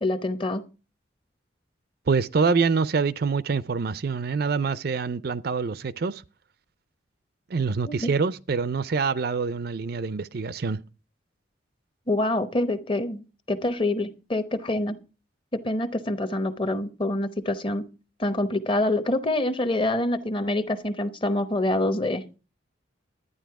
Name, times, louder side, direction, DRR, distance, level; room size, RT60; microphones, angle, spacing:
voice 1, 0.0-0.6 7.9-8.1 12.1-15.0 15.5-17.9 18.2-22.2, left 1 dB, 25° left, 0.9 m, -26 dB
voice 2, 2.1-6.2 7.5-10.8, right 5 dB, 50° right, 0.5 m, -25 dB
11.5 x 9.6 x 4.7 m
head